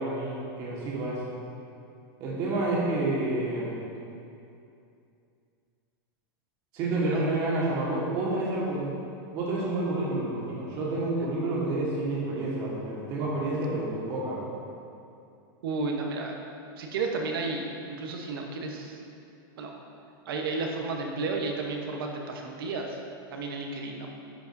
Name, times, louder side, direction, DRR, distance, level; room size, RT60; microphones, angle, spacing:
voice 1, 0.0-1.3 2.2-3.8 6.7-8.9 9.3-14.4, right 2 dB, 35° right, -6 dB, 1.6 m, -29 dB
voice 2, 15.6-16.3 16.8-19.0 19.6-19.8 20.3-23.0 23.3-24.1, right 3 dB, 75° right, 2 dB, 1.0 m, -32 dB
10.5 x 5.0 x 2.6 m, 2.6 s
supercardioid pair, 170°, 12 cm